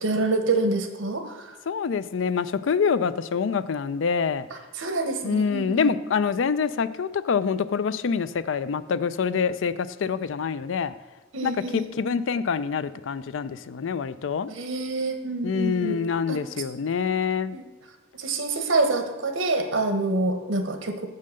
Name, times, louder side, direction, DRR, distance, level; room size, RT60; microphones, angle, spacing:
voice 1, 0.0-1.6 4.8-5.9 11.3-11.9 14.5-16.0 16.3-16.4 17.5-17.6 18.1-21.1, right 2 dB, 90° right, 7 dB, 1.1 m, -26 dB
voice 2, 1.7-4.5 5.2-10.9 11.4-14.5 15.4-17.6 20.1-20.2, left 6 dB, 70° left, 15 dB, 0.4 m, -26 dB
7.5 x 5.6 x 6.4 m, 1.3 s
head